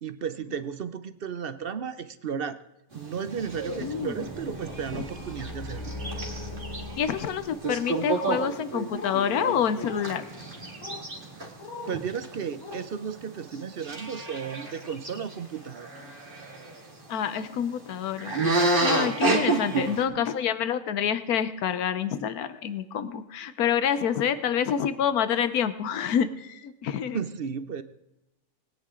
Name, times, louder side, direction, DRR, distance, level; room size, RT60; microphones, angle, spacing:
voice 1, 0.0-2.6 2.9-5.9 11.4-11.5 11.9-15.9 19.7-20.2 27.1-27.8, right 7 dB, 50° right, 12 dB, 0.7 m, -34 dB
sound 1, 2.9-13.2 13.5-13.6 13.8-16.8 18.2-20.0, right 2 dB, 35° right, 2.4 m, -30 dB
sound 2, 3.4-8.0, left 2 dB, 15° left, 2.7 m, -40 dB
voice 2, 3.8-4.3 4.9-5.1 7.0-10.3 17.1-27.2, left 8 dB, 85° left, 12 dB, 1.3 m, -27 dB
sound 3, 8.9-9.2 9.8-10.1 10.8-11.1 11.6-12.0 12.6-12.8 14.8-15.0 15.9-16.1 17.4-17.6 18.4-18.5, left 4 dB, 65° left, 1.7 m, -41 dB
20.5 x 9.5 x 3.8 m, 0.92 s
omnidirectional pair, 1.5 m